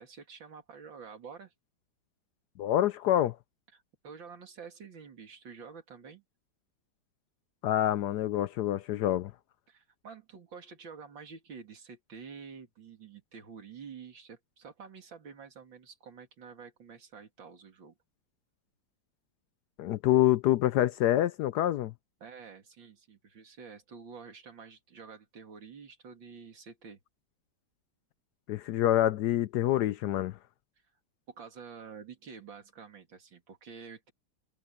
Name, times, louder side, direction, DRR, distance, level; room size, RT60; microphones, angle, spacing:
voice 1, 0.0-1.5 3.7-6.2 9.7-18.0 22.2-27.0 31.3-34.1, right 6 dB, 70° right, 3.3 m, -48 dB
voice 2, 2.6-3.4 7.6-9.3 19.8-21.9 28.5-30.4, left 13 dB, 75° left, 0.9 m, -26 dB
omnidirectional pair, 2.2 m